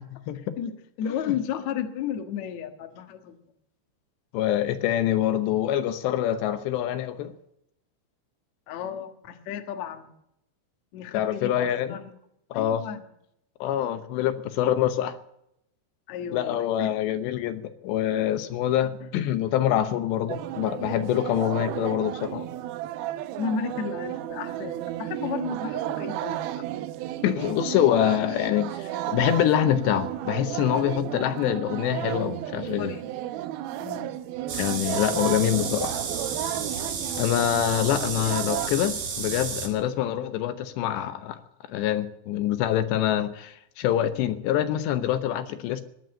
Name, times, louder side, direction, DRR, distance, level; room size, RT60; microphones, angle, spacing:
voice 1, 0.4-3.4 8.7-10.1 10.9-12.1 12.5-13.0 16.1-16.9 19.0-19.1 23.4-26.7 32.5-33.1 33.8-34.1, left 8 dB, 60° left, 6 dB, 1.9 m, -33 dB
voice 2, 4.3-7.3 11.1-12.0 12.5-12.8 13.6-15.2 16.3-22.5 27.2-32.9 34.5-35.9 37.2-41.4 41.7-45.8, left 11 dB, 75° left, 10 dB, 3.0 m, -25 dB
sound 1, 20.3-38.7, right 13 dB, 80° right, 2.2 m, -33 dB
sound 2, 34.5-39.7, right 6 dB, 55° right, 3.7 m, -32 dB
17.0 x 11.0 x 7.8 m, 0.78 s
omnidirectional pair, 5.2 m